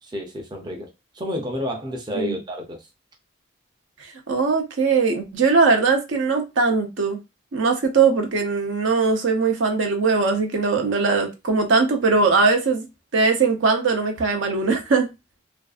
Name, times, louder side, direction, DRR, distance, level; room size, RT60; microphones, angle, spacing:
voice 1, 0.0-2.9, left 1 dB, 20° right, 0.5 m, -31 dB
voice 2, 4.3-7.2 7.5-12.8 13.1-15.1, right 4 dB, 75° right, 0.6 m, -20 dB
2.5 x 2.3 x 2.3 m
head